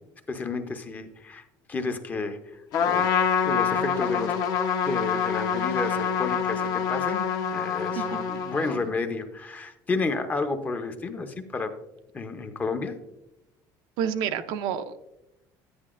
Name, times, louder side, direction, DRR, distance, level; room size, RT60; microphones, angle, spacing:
voice 1, 0.3-4.3 4.8-7.2 7.5-11.7 12.1-13.0, left 3 dB, 20° left, 8 dB, 0.6 m, -31 dB
Trumpet, 2.7-8.9, left 7 dB, 55° left, 0.8 m, -26 dB
voice 2, 14.0-15.0, right 8 dB, 75° right, 9 dB, 0.5 m, -29 dB
10.5 x 9.6 x 2.4 m, 0.93 s
cardioid pair, 150°, 8 cm